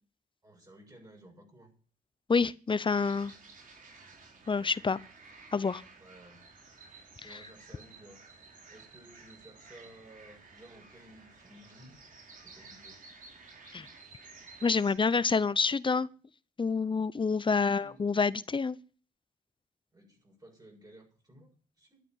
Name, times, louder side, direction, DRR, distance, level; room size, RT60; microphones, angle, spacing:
voice 1, 0.4-1.7 6.0-6.4 6.9-8.2 8.7-12.1 12.4-13.0 17.4-18.0 19.9-22.0, right 1 dB, 25° right, 7.2 m, -55 dB
voice 2, 2.3-3.3 4.5-5.0 5.5-5.8 13.7-13.9 14.6-16.1 16.6-18.8, left 4 dB, 30° left, 0.8 m, -27 dB
sound 1, 2.9-15.0, right 4 dB, 55° right, 4.7 m, -53 dB
12.5 x 8.4 x 9.3 m
cardioid pair, 70°, 16 cm